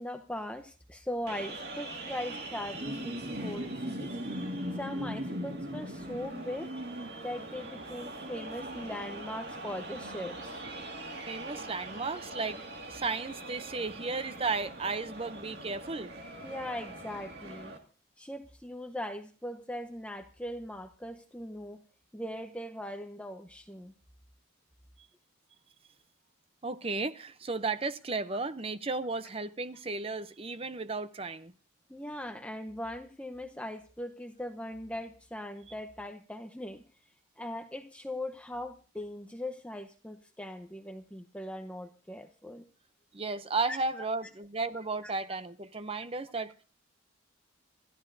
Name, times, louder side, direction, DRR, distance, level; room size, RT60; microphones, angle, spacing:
voice 1, 0.0-4.1 4.8-6.7 7.2-10.6 16.4-17.7 18.2-21.8 22.1-23.9 31.9-36.8 37.4-42.6 43.7-44.0 45.0-45.1, left 1 dB, 5° left, 0.8 m, -40 dB
sound 1, 1.3-17.8, right 1 dB, 50° right, 2.1 m, -40 dB
voice 2, 11.3-12.6 12.9-16.1 26.6-31.5 43.1-46.5, right 3 dB, 30° right, 0.6 m, -34 dB
27.0 x 13.5 x 2.7 m
head